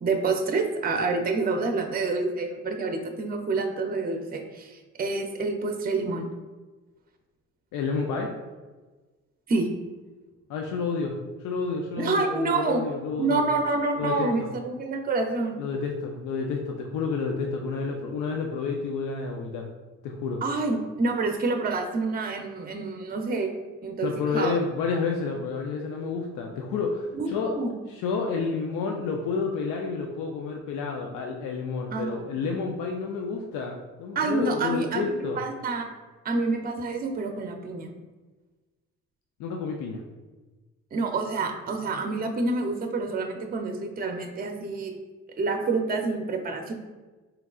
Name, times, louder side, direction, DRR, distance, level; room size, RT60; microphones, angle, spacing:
voice 1, 0.0-6.3 9.5-9.7 12.0-12.8 13.2-15.6 20.4-23.5 23.8-24.1 24.3-24.6 27.1-27.8 31.9-32.2 34.2-35.9 36.2-37.9 40.9-44.9 45.4-46.7, right 3 dB, 30° right, 4 dB, 0.5 m, -28 dB
voice 2, 7.7-8.3 10.5-13.4 14.0-14.3 15.6-19.7 20.0-20.4 24.0-27.5 28.0-35.4 39.4-40.0, left 4 dB, 90° left, 2 dB, 0.5 m, -30 dB
4.5 x 3.6 x 2.3 m, 1.3 s
cardioid pair, 90°, 30 cm